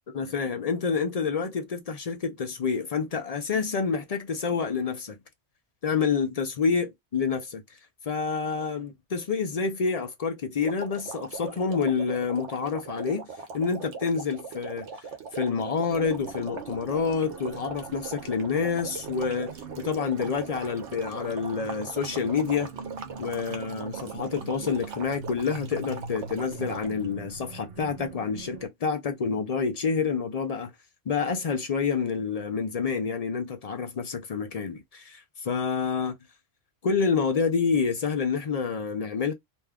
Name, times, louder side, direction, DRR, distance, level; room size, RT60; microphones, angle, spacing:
voice 1, 0.1-5.2 5.8-7.6 8.1-13.2 13.5-15.0 15.3-22.7 23.2-30.7 31.1-36.2 36.8-39.3, left 5 dB, 55° left, 0.4 m, -28 dB
sound 1, 10.6-27.1, right 5 dB, 80° right, 1.0 m, -40 dB
sound 2, 15.9-28.7, right 5 dB, 65° right, 0.7 m, -43 dB
2.6 x 2.3 x 3.3 m
omnidirectional pair, 1.2 m